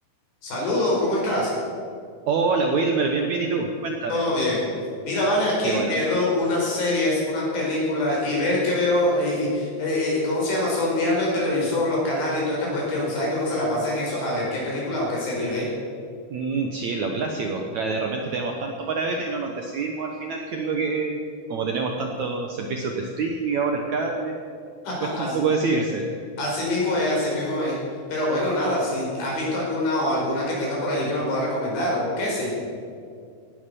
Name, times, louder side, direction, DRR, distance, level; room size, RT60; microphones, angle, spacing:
voice 1, 0.4-1.5 4.1-4.6 5.0-15.6 24.8-25.4 26.4-27.8 28.1-32.5, left 1 dB, 65° left, -4 dB, 6.5 m, -24 dB
voice 2, 2.3-4.2 5.6-6.0 16.3-24.4 25.0-26.1, right 4 dB, 65° right, 2 dB, 1.8 m, -26 dB
18.0 x 11.0 x 6.9 m, 2.3 s
omnidirectional pair, 4.5 m